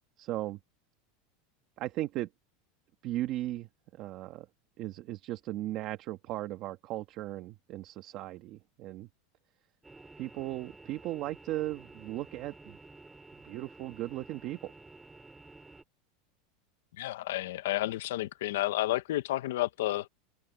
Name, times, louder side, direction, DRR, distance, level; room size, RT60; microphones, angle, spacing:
voice 1, 0.2-0.6 1.8-2.3 3.0-4.5 4.8-9.1 10.2-12.8 13.4-14.7, right 15 dB, 35° right, 1.4 m, -37 dB
sound 1, 9.8-15.8, right 3 dB, 5° right, 4.7 m, -52 dB
voice 2, 17.0-20.1, left 15 dB, 85° left, 1.2 m, -31 dB
supercardioid pair, 175°, 0 cm